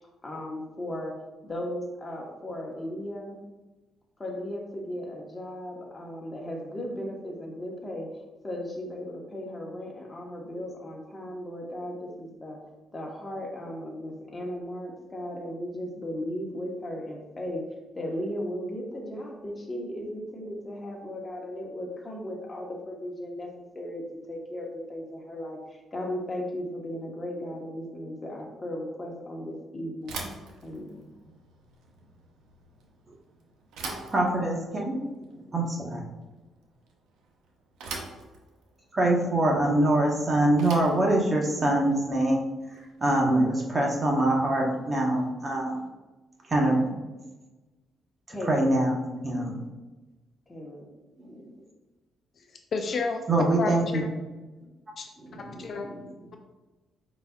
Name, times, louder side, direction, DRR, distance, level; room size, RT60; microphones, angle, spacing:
voice 1, 0.2-1.1 1.4-3.4 4.2-12.6 12.9-17.6 17.9-23.5 23.7-30.2 30.6-31.3 48.3-48.7 50.5-50.8, left 1 dB, 25° left, -1 dB, 1.2 m, -36 dB
Bicycle / Thump thud, 30.0-43.1, right 3 dB, 85° right, 0.8 m, -44 dB
voice 2, 34.1-35.0 35.5-36.0 38.9-42.5 43.0-45.8 46.5-46.9 48.3-49.0 49.2-49.6 51.2-51.5 53.3-54.0 55.2-56.0, right 1 dB, 30° right, -1 dB, 1.2 m, -24 dB
voice 3, 52.7-53.2 53.6-54.1 55.0-55.1 55.3-55.9, left 4 dB, 55° left, 4 dB, 0.5 m, -31 dB
5.2 x 4.0 x 2.4 m, 1.1 s
cardioid pair, 90°, 0 cm